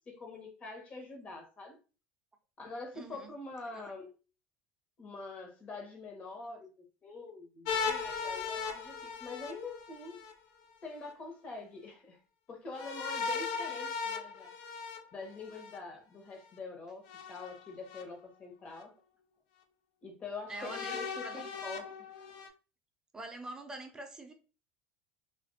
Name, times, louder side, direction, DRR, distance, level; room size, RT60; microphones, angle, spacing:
voice 1, 0.1-1.8 2.6-4.2 5.0-10.2 10.8-12.2 12.5-14.5 15.1-18.9 20.0-22.1, left 3 dB, 35° left, 1.1 m, -45 dB
voice 2, 2.9-3.3 3.7-3.9 20.5-21.5 23.1-24.3, right 2 dB, 15° right, 0.5 m, -45 dB
sound 1, 7.6-10.3 12.7-15.8 17.1-18.0 18.8-18.9 20.5-22.5, left 5 dB, 80° left, 0.5 m, -38 dB
2.7 x 2.5 x 2.7 m
supercardioid pair, 115°, 4 cm